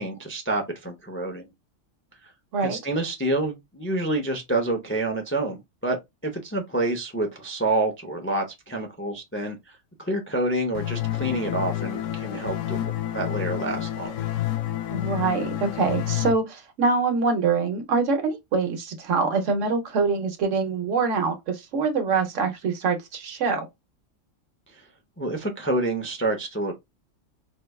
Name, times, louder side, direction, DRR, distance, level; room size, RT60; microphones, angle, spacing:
voice 1, 0.0-1.5 2.2-2.3 2.6-6.0 6.2-14.1 24.7-24.8 25.2-26.8, right 2 dB, 20° left, 0.3 m, -28 dB
sound 1, 10.8-16.3, left 13 dB, 75° left, 1.0 m, -29 dB
voice 2, 14.9-23.7, right 4 dB, 70° right, 1.1 m, -24 dB
4.6 x 2.2 x 2.3 m
omnidirectional pair, 1.3 m